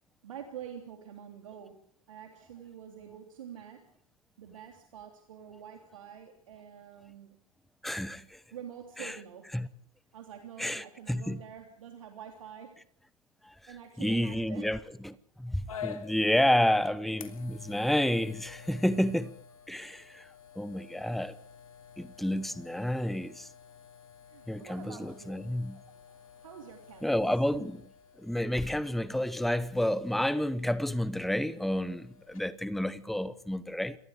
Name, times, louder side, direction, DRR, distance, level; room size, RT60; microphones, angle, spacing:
voice 1, 0.2-3.9 4.4-7.4 8.5-9.5 10.1-12.8 13.7-14.7 21.0-21.2 24.3-25.5 25.9-27.1, right 9 dB, 65° right, 3.1 m, -47 dB
voice 2, 7.8-8.4 9.0-9.1 9.5-9.7 10.6-11.4 13.4-13.5 14.0-14.8 15.0-19.3 19.7-20.3 20.6-21.3 22.0-23.5 24.5-25.8 27.0-27.9 28.2-34.0, left 1 dB, ahead, 1.1 m, -30 dB
sound 1, 15.7-32.4, left 7 dB, 70° left, 3.2 m, -50 dB
29.0 x 23.5 x 5.0 m
figure-of-eight pair, 90°, 18 cm